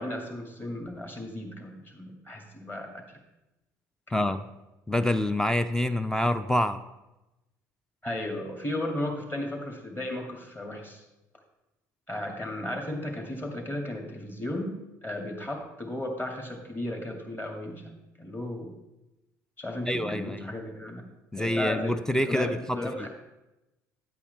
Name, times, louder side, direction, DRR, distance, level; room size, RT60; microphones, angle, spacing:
voice 1, 0.0-3.2 4.2-4.3 8.0-11.0 12.1-18.7 19.6-21.1 21.4-23.1, left 1 dB, 20° left, 2 dB, 2.1 m, -35 dB
voice 2, 4.1-4.4 4.9-6.8 19.9-20.5 21.3-23.1, left 1 dB, 5° left, 11 dB, 0.4 m, -27 dB
9.7 x 8.4 x 3.4 m, 0.98 s
figure-of-eight pair, 60°, 9 cm